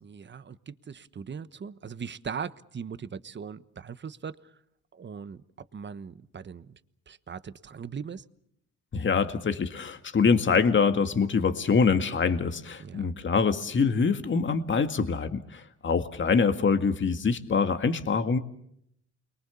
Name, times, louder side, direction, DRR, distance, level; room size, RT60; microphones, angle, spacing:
voice 1, 0.0-4.4 4.9-5.4 5.7-6.8 7.1-8.2 12.8-13.1, right 6 dB, 35° right, 13 dB, 1.3 m, -39 dB
voice 2, 8.9-18.4, left 5 dB, 40° left, 8 dB, 2.0 m, -25 dB
29.0 x 23.0 x 7.1 m, 0.73 s
cardioid pair, 90°, 30 cm